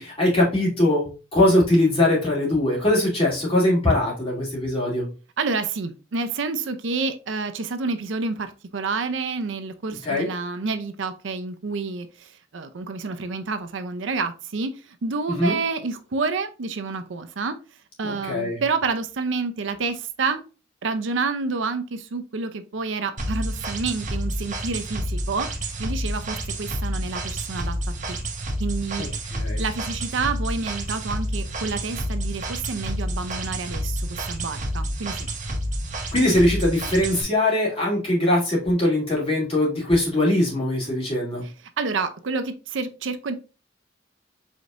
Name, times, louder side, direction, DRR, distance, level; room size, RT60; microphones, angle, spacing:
voice 1, 0.0-5.0 10.0-10.3 15.4-15.5 18.0-18.6 29.0-29.6 36.1-41.4, left 1 dB, 30° left, -4 dB, 2.5 m, -21 dB
voice 2, 5.4-14.7 15.0-17.6 18.0-20.4 20.8-25.5 25.8-27.8 28.1-28.2 28.6-29.0 29.6-35.3 41.4-43.3, right 4 dB, 75° right, 9 dB, 0.5 m, -29 dB
sound 1, 23.2-37.2, right 1 dB, 40° right, 0.9 m, -29 dB
5.0 x 4.0 x 2.5 m, 0.33 s
head